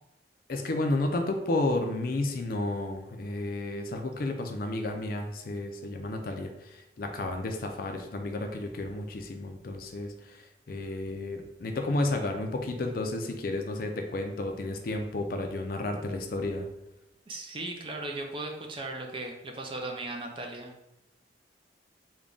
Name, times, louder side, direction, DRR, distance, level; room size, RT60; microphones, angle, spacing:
voice 1, 0.5-16.7, left 2 dB, 50° left, 4 dB, 0.4 m, -32 dB
voice 2, 17.3-20.7, right 2 dB, 30° right, 2 dB, 0.4 m, -37 dB
3.5 x 2.3 x 3.8 m, 0.88 s
head